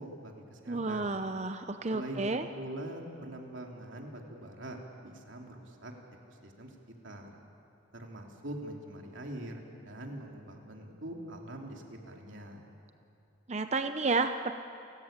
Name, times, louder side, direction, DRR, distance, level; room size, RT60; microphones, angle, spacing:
voice 1, 0.0-1.2 1.9-5.9 6.3-6.7 7.0-7.3 7.9-12.7, right 1 dB, 75° right, 1 dB, 3.1 m, -43 dB
voice 2, 0.7-2.4 13.5-14.5, right 3 dB, 35° right, 8 dB, 0.7 m, -31 dB
30.0 x 14.0 x 8.9 m, 2.7 s
head